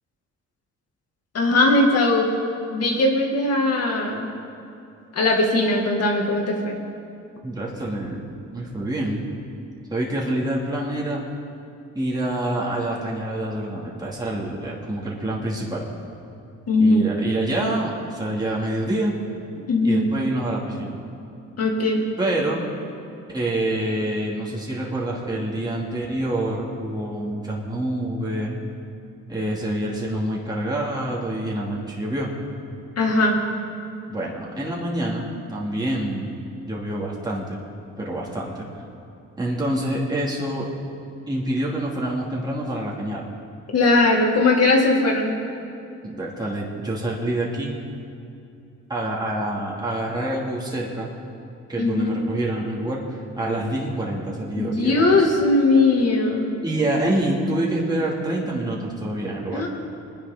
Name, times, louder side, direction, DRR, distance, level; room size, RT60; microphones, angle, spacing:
voice 1, 1.3-2.3 2.7-4.3 5.1-6.8 16.7-17.1 19.7-20.1 21.6-22.0 33.0-33.4 43.7-45.4 51.8-52.2 54.6-56.5 59.5-59.7, left 2 dB, 55° left, 0 dB, 2.4 m, -19 dB
voice 2, 7.4-9.3 9.9-11.2 11.9-15.9 16.8-19.1 19.8-21.0 22.2-22.7 23.3-28.6 29.3-32.3 34.1-36.4 36.7-37.6 38.0-38.7 39.4-40.7 41.3-43.2 46.0-47.8 48.9-51.1 51.7-53.0 53.4-55.3 56.6-59.6, right 1 dB, 15° right, -4 dB, 2.6 m, -26 dB
22.0 x 10.5 x 3.9 m, 2.7 s
cardioid pair, 90°, 30 cm